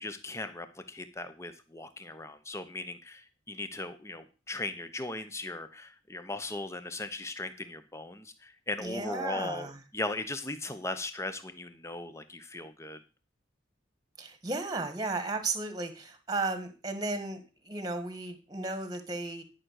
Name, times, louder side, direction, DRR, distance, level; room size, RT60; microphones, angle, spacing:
voice 1, 0.0-13.0, left 2 dB, 15° left, 10 dB, 1.0 m, -38 dB
voice 2, 8.8-9.8 14.2-19.4, right 3 dB, 20° right, 9 dB, 1.5 m, -34 dB
12.0 x 6.1 x 6.5 m, 0.34 s
head